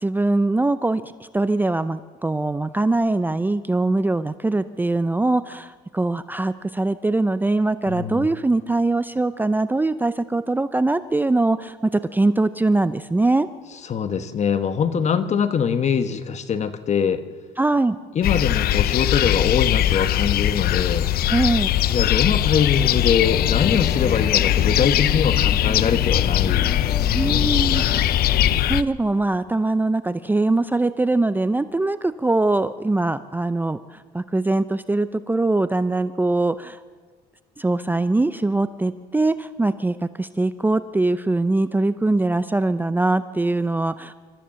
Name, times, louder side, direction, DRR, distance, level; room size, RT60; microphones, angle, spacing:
voice 1, 0.0-13.5 17.6-18.0 21.3-21.7 27.1-28.0 28.3-36.8 37.6-44.1, right 2 dB, 10° right, 13 dB, 0.5 m, -22 dB
voice 2, 7.9-8.3 13.9-17.2 18.1-21.1 21.9-27.4, left 7 dB, 40° left, 11 dB, 1.3 m, -23 dB
sound 1, 18.2-28.8, left 12 dB, 65° left, 0.6 m, -20 dB
sound 2, 23.2-28.6, left 5 dB, 25° left, 0.7 m, -31 dB
26.5 x 13.5 x 7.6 m, 1.5 s
cardioid pair, 110°, 17 cm